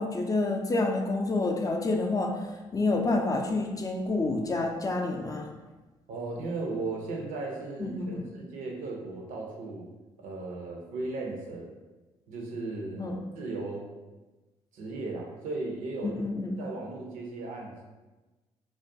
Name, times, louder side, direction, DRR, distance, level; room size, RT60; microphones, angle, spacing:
voice 1, 0.0-2.5 2.7-5.5 7.8-8.3 13.0-13.2 16.0-16.6, left 2 dB, 25° left, 2 dB, 0.4 m, -28 dB
voice 2, 6.1-9.9 10.2-11.7 12.3-13.0 13.4-13.9 14.7-16.1 16.6-17.8, right 3 dB, 75° right, 0 dB, 0.5 m, -36 dB
2.4 x 2.2 x 2.6 m, 1.2 s
hypercardioid pair, 50°, 14 cm